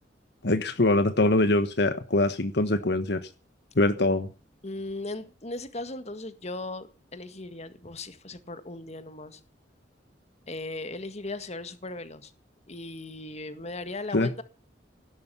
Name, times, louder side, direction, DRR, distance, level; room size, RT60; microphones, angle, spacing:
voice 1, 0.4-3.3 3.8-4.3 14.1-14.3, left 2 dB, 65° left, 1.3 m, -23 dB
voice 2, 4.6-9.4 10.5-12.3 12.7-14.4, left 2 dB, 40° left, 1.8 m, -37 dB
17.0 x 12.0 x 7.0 m
head